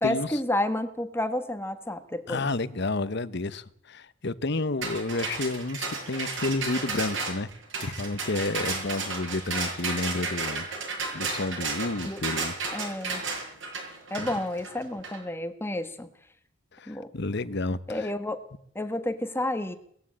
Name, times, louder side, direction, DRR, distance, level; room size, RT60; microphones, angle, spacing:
voice 1, 0.0-2.5 12.0-12.2 12.7-13.2 14.1-16.1 16.9-17.1 17.9-18.4 18.7-19.8, left 1 dB, 10° left, 1.3 m, -30 dB
voice 2, 2.3-10.7 11.1-12.9 14.2-14.3 16.7-18.1, left 2 dB, 55° left, 1.0 m, -31 dB
sound 1, 4.8-15.2, right 4 dB, 65° right, 7.7 m, -33 dB
19.5 x 15.5 x 8.6 m
head